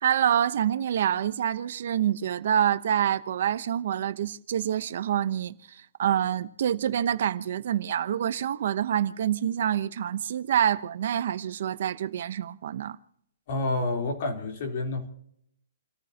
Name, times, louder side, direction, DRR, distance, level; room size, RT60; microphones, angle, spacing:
voice 1, 0.0-13.0, right 10 dB, 55° right, 0.9 m, -27 dB
voice 2, 13.5-15.1, left 2 dB, 45° left, 3.7 m, -29 dB
29.5 x 14.0 x 2.9 m
hypercardioid pair, 165°, 0 cm